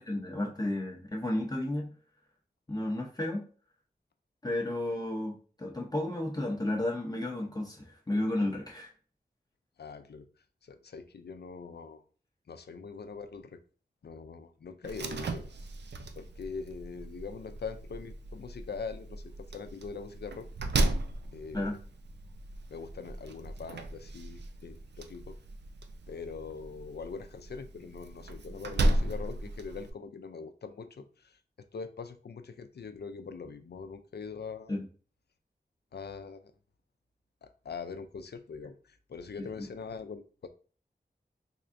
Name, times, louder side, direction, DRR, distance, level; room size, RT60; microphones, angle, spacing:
voice 1, 0.0-1.9 2.7-3.4 4.4-8.9 21.5-21.8 34.7-34.8 39.4-39.5, left 1 dB, 20° left, -1 dB, 0.6 m, -32 dB
voice 2, 9.8-10.3 10.6-12.0 12.5-13.6 14.0-15.5 16.2-20.5 21.3-21.8 22.7-25.4 26.1-34.7 35.9-36.5 37.4-40.5, left 5 dB, 70° left, 9 dB, 0.4 m, -42 dB
Slam, 14.8-29.9, right 2 dB, 85° right, 0.4 m, -35 dB
3.5 x 3.3 x 2.5 m, 0.40 s
wide cardioid pair, 70°, 17 cm